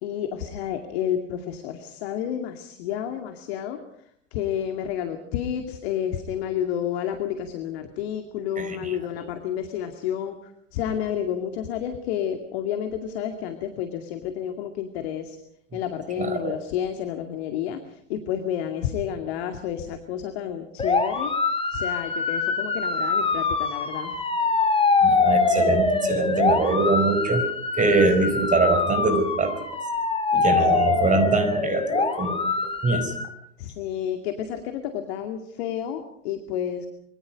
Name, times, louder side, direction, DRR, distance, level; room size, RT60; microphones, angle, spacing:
voice 1, 0.0-3.8 4.3-10.3 10.7-15.4 15.7-17.8 18.1-21.3 21.7-24.1 33.6-36.9, left 9 dB, 55° left, 6 dB, 2.4 m, -30 dB
voice 2, 8.6-9.2 15.7-15.8 16.2-16.6 25.0-27.4 27.8-29.6 30.3-33.1, right 3 dB, 20° right, 9 dB, 4.5 m, -24 dB
sound 1, 20.8-33.3, left 4 dB, 15° left, 3.4 m, -24 dB
25.5 x 23.5 x 5.2 m, 0.69 s
figure-of-eight pair, 90°, 37 cm